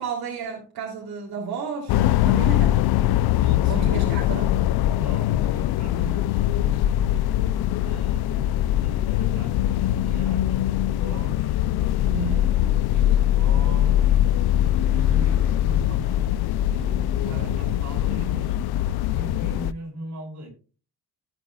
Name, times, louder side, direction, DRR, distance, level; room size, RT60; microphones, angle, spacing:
voice 1, 0.0-2.8 3.7-4.5 12.0-12.5 17.3-17.8, right 5 dB, 75° right, 3.1 m, -32 dB
sound 1, 1.9-19.7, left 12 dB, 80° left, 0.6 m, -22 dB
voice 2, 3.4-4.0 4.9-7.2 7.8-11.6 12.1-14.2 14.7-16.1 16.6-18.6 18.9-20.5, equal, 50° right, 5.7 m, -39 dB
16.0 x 9.0 x 2.3 m
cardioid pair, 175°, 37 cm